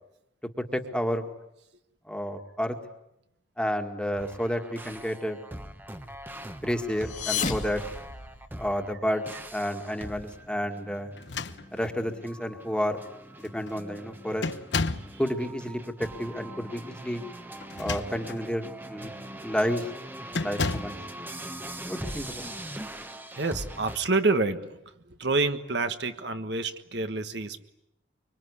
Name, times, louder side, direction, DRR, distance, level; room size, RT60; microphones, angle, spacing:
voice 1, 0.7-1.2 2.1-2.8 3.6-5.4 6.6-7.8 8.6-11.1 11.7-13.0 13.4-14.5 15.2-17.2 17.8-19.1 19.4-19.9 20.4-21.0 21.9-22.5, equal, 5° left, 5 dB, 2.0 m, -30 dB
sound 1, 4.2-24.0, right 1 dB, 10° right, 1.2 m, -42 dB
sound 2, 6.9-8.8, left 6 dB, 40° left, 2.0 m, -33 dB
sound 3, 11.1-12.1 12.9-13.0 13.4-13.8 14.4-15.2 17.6-18.4 19.0-19.2 20.3-21.0, left 4 dB, 65° left, 1.0 m, -32 dB
voice 2, 23.4-24.8 25.1-27.6, right 3 dB, 60° right, 8 dB, 1.5 m, -28 dB
25.0 x 24.5 x 9.8 m, 0.84 s
head